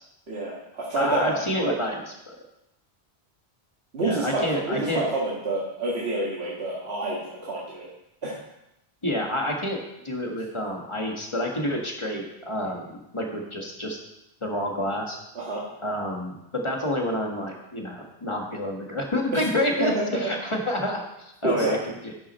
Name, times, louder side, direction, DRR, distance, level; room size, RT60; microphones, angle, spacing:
voice 1, 0.3-1.7 3.9-7.9 8.2-8.4 15.4-15.6 19.3-19.4 20.1-20.2 21.4-21.7, right 2 dB, 80° right, -7 dB, 1.9 m, -28 dB
voice 2, 1.0-2.3 4.0-5.0 9.0-9.8 10.0-14.0 14.4-15.2 15.8-21.8 22.0-22.1, left 1 dB, 30° left, 0 dB, 1.6 m, -28 dB
11.5 x 6.2 x 4.3 m, 0.87 s
omnidirectional pair, 1.1 m